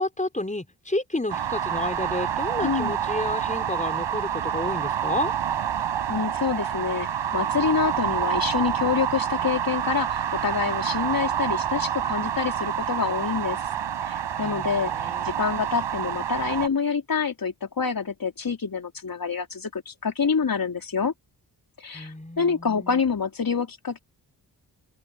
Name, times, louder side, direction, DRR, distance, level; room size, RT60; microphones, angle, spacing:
voice 1, 0.0-5.3 14.4-15.3 21.9-23.0, left 2 dB, 15° left, 6.1 m, -31 dB
sound 1, 1.3-16.7, right 9 dB, 90° right, 5.7 m, -28 dB
voice 2, 2.6-3.0 6.1-7.1 7.3-13.6 14.0-21.1 21.8-24.0, left 6 dB, 55° left, 4.0 m, -27 dB
cardioid pair, 45°, 42 cm